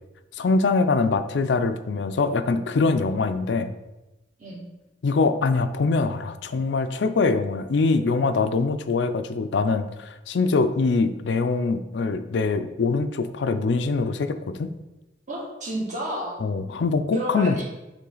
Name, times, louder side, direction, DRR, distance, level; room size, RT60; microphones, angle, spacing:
voice 1, 0.4-3.7 5.0-14.7 16.4-17.6, left 4 dB, 80° left, 10 dB, 0.4 m, -23 dB
voice 2, 15.3-16.4 17.1-17.6, right 1 dB, 45° right, -4 dB, 1.8 m, -31 dB
8.4 x 3.3 x 3.9 m, 1.0 s
head